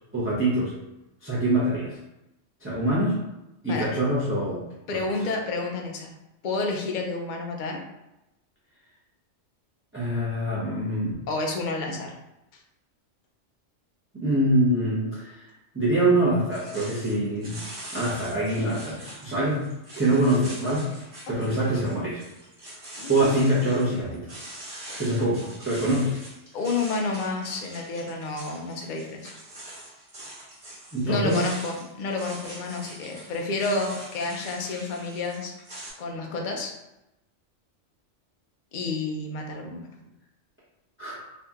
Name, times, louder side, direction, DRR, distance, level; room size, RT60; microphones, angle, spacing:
voice 1, 0.1-0.7 1.2-2.0 2.6-3.2 3.6-4.6 4.9-5.0 9.9-11.2 14.1-15.4 15.7-17.6 17.9-19.6 20.0-20.9 21.4-22.2 23.1-24.4 25.0-26.2 30.9-31.4 41.0-41.2, right 1 dB, 10° right, -9 dB, 0.7 m, -24 dB
voice 2, 4.9-6.1 6.4-7.8 11.3-12.1 21.4-21.6 23.0-23.4 26.5-29.3 31.0-35.5 36.0-36.7 38.7-39.9, left 3 dB, 55° left, 2 dB, 0.6 m, -30 dB
sound 1, 16.5-35.9, right 1 dB, 45° right, 1.2 m, -43 dB
2.8 x 2.5 x 3.5 m, 0.92 s
omnidirectional pair, 1.3 m